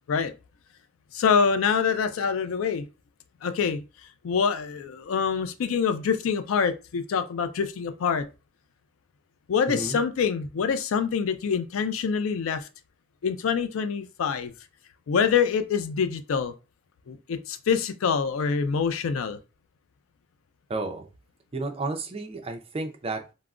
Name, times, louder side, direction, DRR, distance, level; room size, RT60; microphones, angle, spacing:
voice 1, 1.1-2.9 3.4-3.8 4.2-8.3 9.5-12.7 13.2-14.5 15.1-16.5 17.1-19.4, left 6 dB, 80° left, 0.4 m, -25 dB
voice 2, 9.7-10.0 20.7-21.0 21.5-23.3, right 3 dB, 30° right, 0.4 m, -32 dB
3.5 x 2.0 x 2.3 m
head